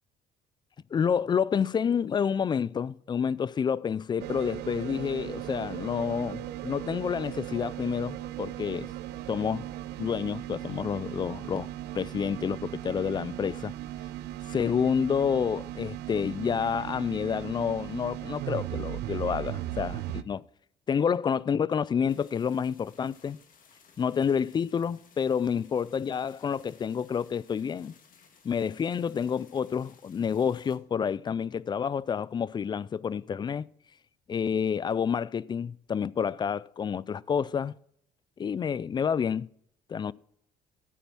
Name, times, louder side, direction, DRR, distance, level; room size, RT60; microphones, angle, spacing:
voice 1, 0.9-8.9 9.3-9.7 10.0-11.7 11.9-13.7 14.5-20.4 20.9-23.4 24.0-27.9 28.4-33.7 34.3-37.7 38.4-39.5 39.9-40.1, left 7 dB, 25° left, 0.3 m, -29 dB
sound 1, 4.2-20.2, right 14 dB, 80° right, 0.6 m, -37 dB
sound 2, 22.1-30.8, left 6 dB, 55° left, 1.9 m, -60 dB
12.5 x 8.5 x 6.1 m
cardioid pair, 110°, 17 cm